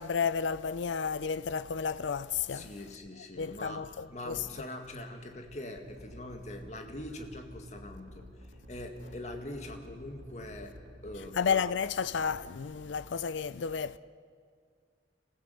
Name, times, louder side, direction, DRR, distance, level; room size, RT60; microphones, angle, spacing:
voice 1, 0.0-2.7 3.4-4.4 11.3-14.0, left 6 dB, 85° left, 0.5 m, -32 dB
voice 2, 2.5-3.8 4.1-10.7 11.0-11.4 12.9-13.0, left 1 dB, 40° left, 2.0 m, -43 dB
sound 1, 5.9-12.9, equal, 45° right, 3.2 m, -52 dB
27.0 x 15.5 x 7.9 m
head